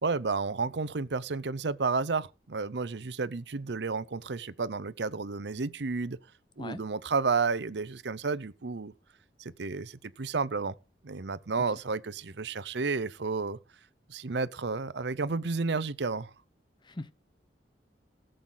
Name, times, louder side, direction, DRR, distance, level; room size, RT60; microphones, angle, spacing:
voice 1, 0.0-6.2 6.6-8.9 9.4-10.7 11.0-13.6 14.1-16.3, right 4 dB, 70° right, 0.7 m, -31 dB
voice 2, 6.6-6.8 11.7-11.8 16.8-17.1, left 2 dB, 25° left, 0.7 m, -40 dB
18.0 x 7.8 x 3.9 m
head